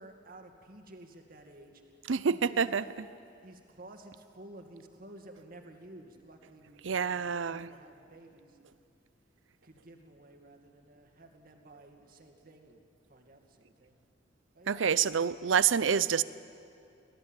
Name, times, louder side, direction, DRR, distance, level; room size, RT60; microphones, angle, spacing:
voice 1, 0.0-2.9 3.4-8.7 9.6-12.8 13.1-14.0 14.5-14.9, right 1 dB, 50° right, 4 dB, 2.2 m, -53 dB
voice 2, 2.1-2.8 6.8-7.7 14.7-16.2, right 7 dB, 85° right, 16 dB, 0.6 m, -27 dB
24.5 x 17.0 x 9.0 m, 2.5 s
head